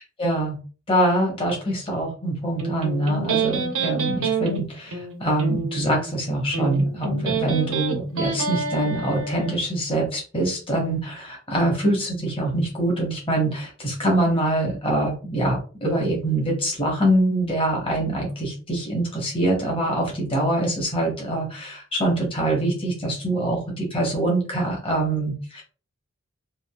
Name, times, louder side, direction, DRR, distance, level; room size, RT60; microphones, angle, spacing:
voice 1, 0.2-0.6 0.9-25.6, right 1 dB, 25° left, -2 dB, 1.1 m, -24 dB
Electric guitar, 2.6-9.6, right 4 dB, 75° right, 0.8 m, -28 dB
3.6 x 2.4 x 2.3 m, 0.36 s
head